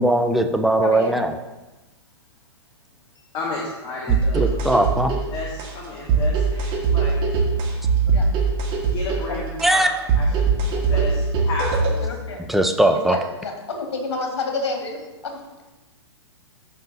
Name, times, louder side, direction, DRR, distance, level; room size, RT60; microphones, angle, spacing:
voice 1, 0.0-1.3 4.1-5.1 9.6-9.9 12.5-13.2, right 1 dB, ahead, 6 dB, 0.5 m, -19 dB
voice 2, 0.8-1.2 3.2-3.3 8.1-8.3 8.7-8.9 9.3-9.4 10.7-11.1 12.0-12.4 13.1-15.3, left 3 dB, 65° left, 2 dB, 2.0 m, -30 dB
voice 3, 3.3-4.5 5.3-7.2 8.8-9.9 10.1-12.0, left 3 dB, 30° left, -3 dB, 1.5 m, -32 dB
sound 1, 4.1-12.1, right 4 dB, 30° right, 1.8 m, -21 dB
14.5 x 5.5 x 2.8 m, 1.1 s
figure-of-eight pair, 115°, 15 cm